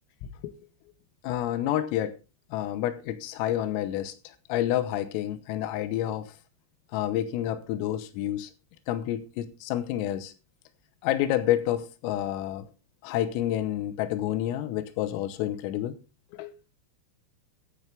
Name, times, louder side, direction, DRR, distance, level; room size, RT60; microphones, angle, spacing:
voice 1, 0.2-0.5 1.2-2.2 2.5-6.4 6.9-8.5 8.9-10.3 11.0-12.7 13.0-16.0 16.3-16.7, left 12 dB, 85° left, 3.7 m, -29 dB
13.0 x 11.0 x 3.4 m
omnidirectional pair, 5.8 m